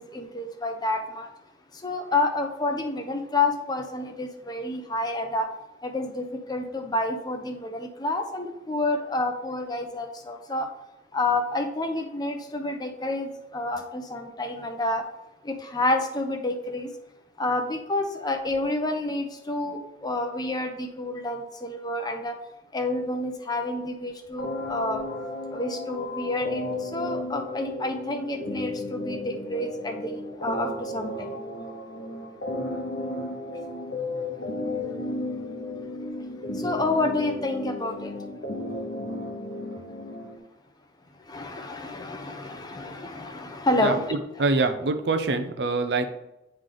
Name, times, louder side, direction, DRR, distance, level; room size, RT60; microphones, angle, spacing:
voice 1, 0.0-1.3 1.7-5.5 5.8-10.7 11.1-15.1 15.4-16.9 17.4-22.4 22.7-25.0 25.5-31.4 36.0-36.1 36.5-38.2 41.2-44.2, left 2 dB, 25° left, 5 dB, 0.7 m, -29 dB
sound 1, 24.4-40.4, left 1 dB, 65° left, 0.9 m, -34 dB
voice 2, 44.4-46.1, right 3 dB, 65° right, 7 dB, 0.6 m, -24 dB
9.0 x 3.3 x 3.8 m, 0.90 s
head